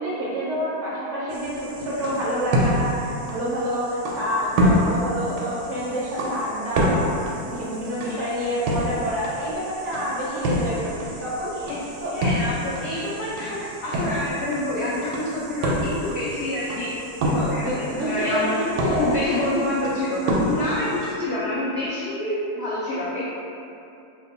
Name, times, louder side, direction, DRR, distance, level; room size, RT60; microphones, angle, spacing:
voice 1, 0.0-7.0 7.3-11.5 12.0-12.1 17.6-19.2, equal, 65° right, -7 dB, 0.7 m, -27 dB
sound 1, 1.3-21.1, equal, 90° right, 1.2 m, -28 dB
voice 2, 12.1-16.9 17.2-18.7 19.0-23.2, left 1 dB, 80° left, -8 dB, 0.5 m, -27 dB
2.8 x 2.2 x 4.0 m, 2.8 s
omnidirectional pair, 1.6 m